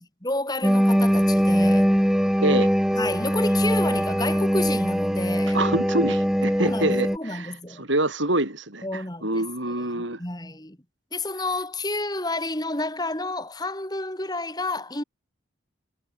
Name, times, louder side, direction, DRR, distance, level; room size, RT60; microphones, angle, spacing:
voice 1, 0.2-1.9 3.0-5.6 6.6-7.8 8.8-9.4 9.9-10.8 11.1-15.0, left 2 dB, 20° left, 3.7 m, -30 dB
sound 1, 0.6-7.2, equal, 5° right, 1.4 m, -21 dB
voice 2, 2.4-2.7 5.5-10.2, right 1 dB, 70° right, 7.7 m, -26 dB
head